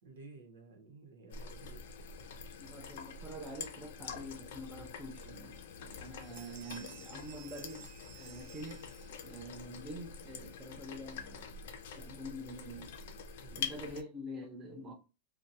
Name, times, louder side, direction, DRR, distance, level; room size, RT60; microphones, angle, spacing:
voice 1, 0.0-1.8 13.4-14.0, right 3 dB, 85° right, 1.0 m, -54 dB
sound 1, 1.3-14.0, left 6 dB, 70° left, 0.5 m, -46 dB
voice 2, 2.5-11.6 11.9-13.0 13.6-14.9, equal, 20° right, 0.7 m, -46 dB
Bell, 6.2-9.4, right 12 dB, 55° right, 0.3 m, -55 dB
2.8 x 2.3 x 2.6 m
supercardioid pair, 150°, 0 cm